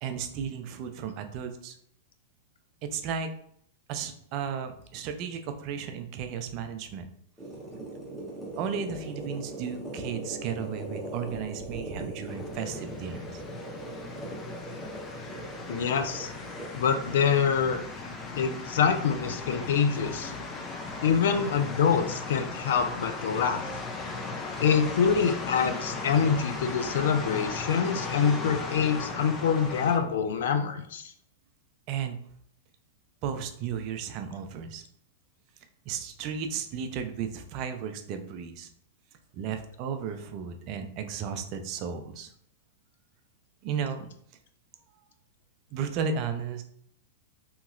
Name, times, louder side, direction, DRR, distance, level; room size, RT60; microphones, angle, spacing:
voice 1, 0.0-1.7 2.8-3.3 3.9-7.1 8.6-13.3 26.8-26.9 31.9-32.2 33.2-34.8 35.9-38.7 39.3-42.3 43.6-44.1 45.7-46.6, right 7 dB, 45° right, 7 dB, 0.4 m, -34 dB
sound 1, 7.4-17.4, right 1 dB, ahead, 0.9 m, -40 dB
sound 2, 12.3-30.0, left 3 dB, 25° left, 0.5 m, -37 dB
voice 2, 15.7-16.3 16.7-17.8 18.4-20.3 21.0-23.7 24.6-31.1, left 6 dB, 75° left, 8 dB, 0.4 m, -25 dB
2.9 x 2.8 x 2.5 m, 0.66 s
hypercardioid pair, 120°, 0 cm